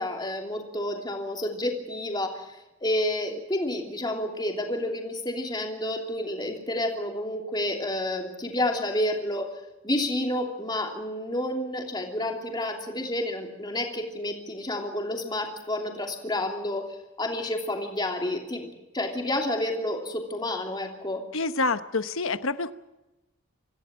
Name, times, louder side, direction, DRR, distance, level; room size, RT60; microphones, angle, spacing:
voice 1, 0.0-9.5 9.8-16.9 17.2-18.7 18.9-21.2, left 1 dB, 20° left, 1 dB, 3.1 m, -30 dB
voice 2, 21.3-22.7, left 3 dB, 65° left, 11 dB, 1.0 m, -27 dB
26.0 x 16.0 x 7.6 m, 0.99 s
head